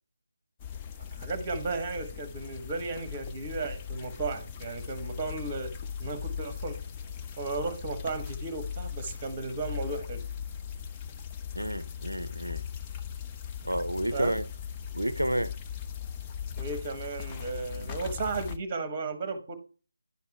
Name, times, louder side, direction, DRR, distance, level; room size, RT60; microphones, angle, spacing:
sound 1, 0.6-18.6, left 8 dB, 15° left, 0.4 m, -39 dB
voice 1, 1.2-5.7 6.0-6.8 7.4-10.2 14.1-14.4 16.5-19.6, right 3 dB, 20° right, 1.0 m, -34 dB
voice 2, 11.6-12.6 13.6-14.5 14.9-15.5 17.7-17.9, right 1 dB, 80° right, 0.4 m, -30 dB
10.5 x 3.5 x 4.3 m
figure-of-eight pair, 155°, 0 cm